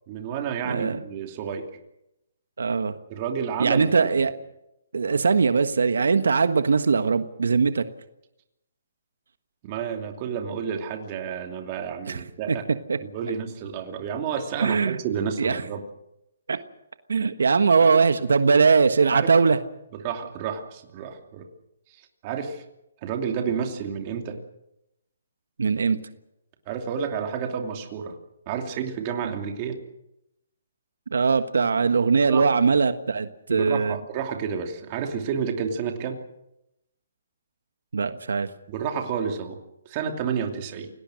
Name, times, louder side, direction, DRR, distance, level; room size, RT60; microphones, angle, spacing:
voice 1, 0.1-1.7 3.1-4.1 9.6-12.6 13.1-15.8 17.8-18.0 19.1-19.3 20.0-21.5 22.0-22.6 23.0-24.4 26.7-28.2 28.5-29.8 32.3-32.4 33.5-36.2 38.7-39.6 39.8-40.9, right 7 dB, 25° right, 4 dB, 2.8 m, -30 dB
voice 2, 0.6-1.0 2.6-2.9 3.6-4.3 4.9-7.8 12.1-12.6 12.9-13.0 14.6-15.0 15.4-15.6 16.5-16.6 17.1-19.6 25.6-26.0 29.2-29.3 31.1-34.0 37.9-38.5, right 5 dB, 85° right, 10 dB, 1.4 m, -21 dB
28.5 x 18.0 x 6.5 m, 0.85 s
hypercardioid pair, 165°, 0 cm